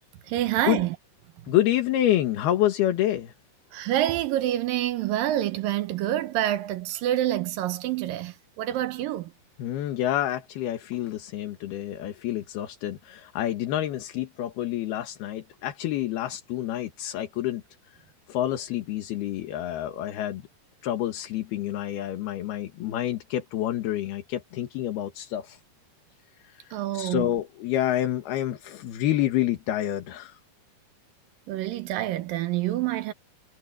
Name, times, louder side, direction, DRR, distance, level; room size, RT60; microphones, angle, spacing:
voice 1, 0.3-1.0 3.7-9.3 26.7-27.3 31.5-33.1, right 13 dB, 70° right, 2.5 m, -27 dB
voice 2, 1.5-3.3 9.6-17.6 18.3-20.4 20.8-25.6 26.5-30.4, left 12 dB, 75° left, 3.5 m, -28 dB
omnidirectional pair, 4.5 m